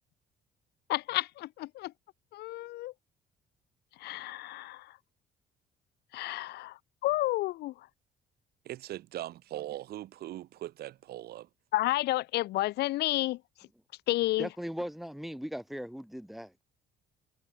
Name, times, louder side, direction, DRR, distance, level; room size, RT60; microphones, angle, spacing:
voice 1, 0.9-1.9 2.3-2.9 4.0-4.9 6.1-7.7 11.7-13.4 14.1-14.5, left 17 dB, 75° left, 0.9 m, -31 dB
voice 2, 8.7-11.5, right 14 dB, 70° right, 2.0 m, -40 dB
voice 3, 14.4-16.6, equal, ahead, 1.9 m, -38 dB
cardioid pair, 110°, 17 cm